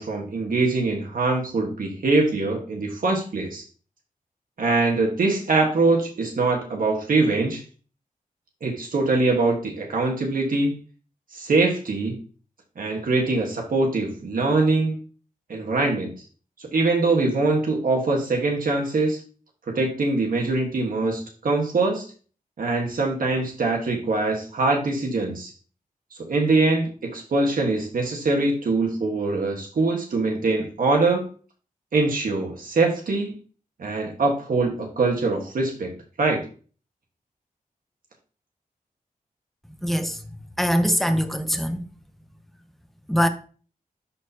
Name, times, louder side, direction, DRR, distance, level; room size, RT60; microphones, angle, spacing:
voice 1, 0.0-3.6 4.6-7.6 8.6-10.7 11.3-12.2 12.8-15.0 15.5-16.1 16.6-19.2 19.7-22.1 22.6-25.5 26.3-31.2 31.9-33.4 33.8-35.9 36.2-36.4, right 3 dB, 70° right, 1.5 m, -23 dB
voice 2, 39.8-40.2 40.6-41.8 43.1-43.3, equal, ahead, 0.8 m, -22 dB
11.5 x 4.2 x 2.8 m
wide cardioid pair, 105°, 15 cm